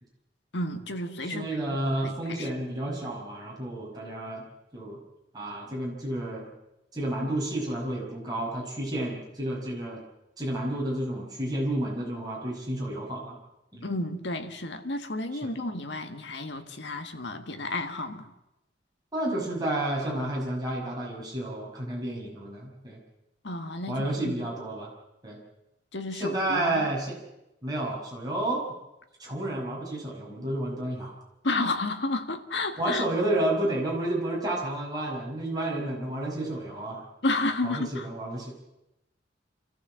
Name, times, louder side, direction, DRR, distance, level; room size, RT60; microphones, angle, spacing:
voice 1, 0.5-2.5 13.8-18.3 23.4-24.3 25.9-26.9 31.4-33.0 37.2-38.1, left 2 dB, 70° left, 1.7 m, -32 dB
voice 2, 1.2-4.4 4.7-5.0 5.3-6.5 6.9-10.0 10.4-13.4 13.7-13.8 15.3-15.5 19.1-23.0 23.9-24.9 25.2-25.4 26.1-27.2 27.6-28.6 29.2-31.1 32.8-37.0 37.6-38.5, right 1 dB, 20° right, 6.0 m, -31 dB
27.5 x 14.5 x 7.6 m
head